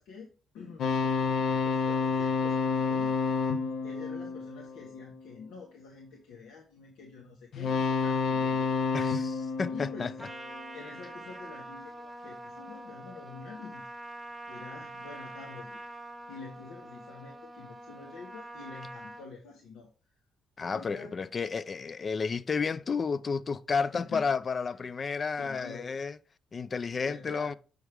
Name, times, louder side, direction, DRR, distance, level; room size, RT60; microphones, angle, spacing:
voice 1, 0.0-3.1 3.8-8.7 9.6-10.1 10.7-13.9 14.5-15.8 16.3-19.9 20.7-21.2 23.9-24.3 24.8-24.9 25.4-25.9 27.0-27.5, left 4 dB, 90° left, 1.1 m, -47 dB
sound 1, 0.8-5.2 7.5-10.8, left 4 dB, 65° left, 0.7 m, -29 dB
voice 2, 8.9-10.3 20.6-26.2 26.5-27.5, left 5 dB, 40° left, 0.3 m, -32 dB
Trumpet, 10.2-19.3, right 1 dB, 5° right, 0.9 m, -45 dB
6.2 x 4.7 x 3.4 m
cardioid pair, 90°, 0 cm